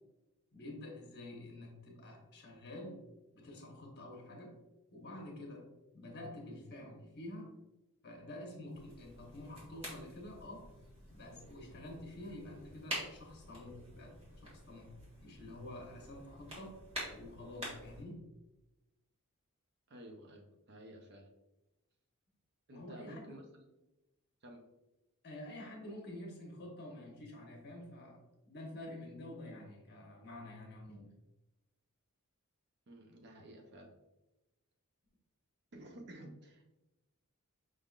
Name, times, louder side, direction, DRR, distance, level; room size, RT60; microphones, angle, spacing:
voice 1, 0.5-3.0 3.3-4.6 4.9-5.7 5.9-7.6 8.0-10.7 11.1-14.1 14.4-14.9 15.2-16.7 17.1-18.3 22.7-23.4 25.2-28.2 28.5-31.1, left 1 dB, 50° left, 0 dB, 1.0 m, -48 dB
sound 1, 8.7-18.0, equal, 25° right, 1.4 m, -48 dB
voice 2, 19.9-21.3 22.7-23.6 24.4-24.6 32.9-33.9 35.7-36.7, right 1 dB, 50° right, 3 dB, 0.6 m, -52 dB
5.0 x 3.7 x 2.4 m, 1.0 s
head